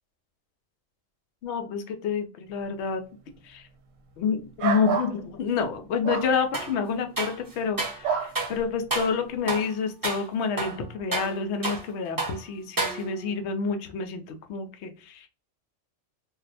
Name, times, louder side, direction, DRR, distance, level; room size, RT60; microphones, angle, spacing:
voice 1, 1.4-3.0 3.4-3.7 4.2-15.3, left 5 dB, 65° left, 6 dB, 0.8 m, -28 dB
sound 1, 4.6-5.1 6.0-6.3 8.0-8.3, right 6 dB, 75° right, 1.0 m, -27 dB
sound 2, 6.5-6.8 7.2-8.0 8.3-8.6 8.9-9.2 9.5-9.7 10.0-10.3 10.6-11.9 12.2-12.4 12.8-13.3, right 2 dB, 20° right, 0.8 m, -30 dB
3.9 x 2.1 x 2.8 m, 0.35 s
omnidirectional pair, 1.4 m